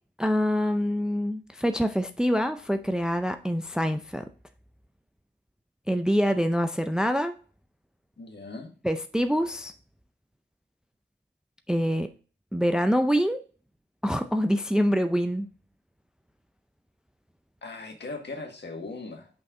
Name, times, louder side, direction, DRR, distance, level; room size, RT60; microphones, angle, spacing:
voice 1, 0.2-4.3 5.9-7.3 8.8-9.7 11.7-12.1 12.5-13.4 14.0-15.5, equal, 5° right, 8 dB, 0.5 m, -25 dB
voice 2, 8.2-8.7 17.6-19.3, left 3 dB, 65° left, 3 dB, 1.6 m, -39 dB
5.5 x 5.5 x 3.7 m, 0.38 s
cardioid pair, 55°, 19 cm